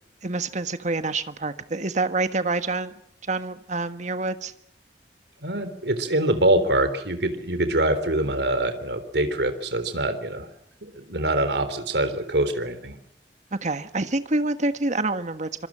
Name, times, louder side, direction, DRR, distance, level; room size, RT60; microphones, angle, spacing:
voice 1, 0.2-2.9 3.3-4.5 13.5-15.7, right 2 dB, 45° right, 10 dB, 1.5 m, -27 dB
voice 2, 5.4-10.5 10.8-13.0, right 1 dB, 70° right, 10 dB, 3.6 m, -24 dB
25.5 x 24.0 x 7.5 m, 0.72 s
head